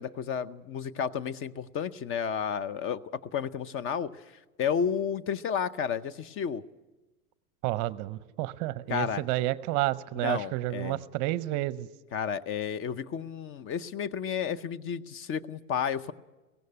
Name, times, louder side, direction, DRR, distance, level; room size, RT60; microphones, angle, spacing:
voice 1, 0.0-4.2 4.6-6.6 8.9-9.2 10.2-11.0 12.1-16.1, left 7 dB, 30° left, 15 dB, 0.7 m, -32 dB
voice 2, 7.6-11.9, right 16 dB, 45° right, 16 dB, 0.7 m, -30 dB
17.0 x 16.0 x 9.8 m, 1.1 s
hypercardioid pair, 115°, 43 cm